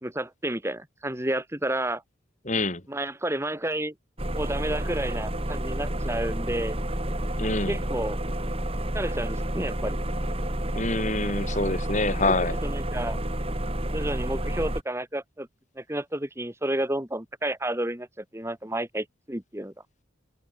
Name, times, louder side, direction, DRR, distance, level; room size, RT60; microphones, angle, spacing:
voice 1, 0.0-2.0 2.9-3.9 4.3-6.8 7.4-8.2 8.9-10.0 12.2-12.3 12.6-13.2 13.9-15.5 15.8-18.1 18.3-19.7, right 1 dB, 15° right, 2.3 m, -31 dB
voice 2, 2.5-2.8 7.4-7.8 10.7-12.6, left 2 dB, 40° left, 7.3 m, -26 dB
sound 1, 4.2-14.8, right 1 dB, 30° right, 4.1 m, -30 dB
head